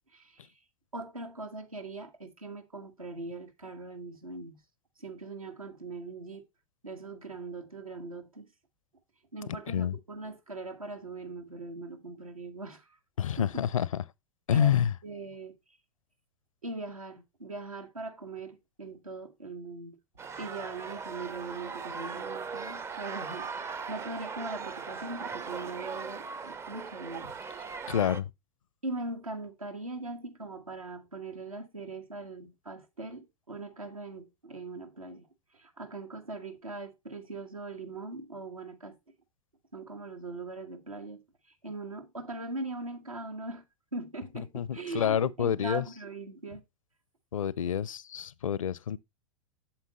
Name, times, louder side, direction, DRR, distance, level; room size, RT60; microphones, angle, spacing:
voice 1, 0.1-0.5 0.9-4.6 5.0-6.5 6.8-8.5 9.3-13.0 13.4-13.6 14.5-15.5 16.6-20.0 20.4-27.4 28.8-35.3 35.5-39.0 39.7-41.2 41.6-43.6 43.9-46.6, right 3 dB, 85° right, 1.4 m, -41 dB
voice 2, 13.2-14.0 14.5-14.9 27.9-28.3 44.5-45.8 47.3-49.0, left 9 dB, 75° left, 0.5 m, -28 dB
sound 1, 20.2-28.2, right 5 dB, 15° right, 0.4 m, -39 dB
8.7 x 7.4 x 2.9 m
figure-of-eight pair, 90°, 18 cm